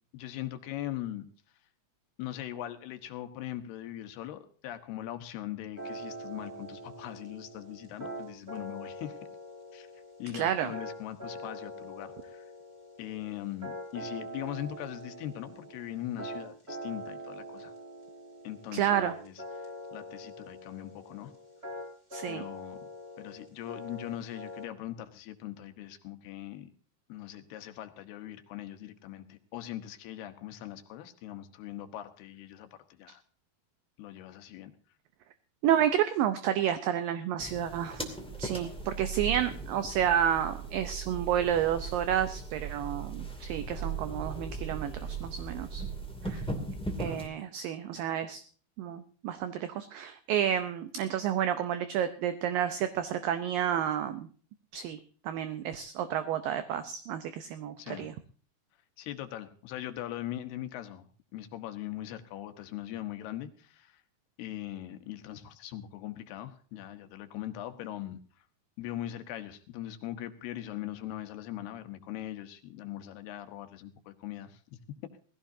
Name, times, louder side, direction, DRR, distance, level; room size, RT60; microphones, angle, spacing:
voice 1, 0.1-1.2 2.2-9.2 9.7-9.9 10.2-12.5 13.0-17.7 18.4-21.3 22.3-22.8 23.2-26.7 27.1-33.2 34.0-34.7 39.4-39.5 46.2-46.5 47.0-47.3 57.8-58.1 59.0-64.0 64.4-68.2 68.8-74.6, left 13 dB, 75° left, 9 dB, 3.1 m, -41 dB
sound 1, 5.8-24.7, equal, 15° right, 4.5 m, -43 dB
voice 2, 10.3-10.7 18.7-19.1 22.1-22.4 35.6-38.0 38.4-45.9 46.2-46.4 47.0-48.4 48.8-54.3 54.7-55.0 55.2-58.1, right 10 dB, 75° right, 10 dB, 2.2 m, -30 dB
sound 2, 37.4-47.3, right 4 dB, 5° left, 0.9 m, -38 dB
19.5 x 16.0 x 2.7 m, 0.42 s
omnidirectional pair, 4.8 m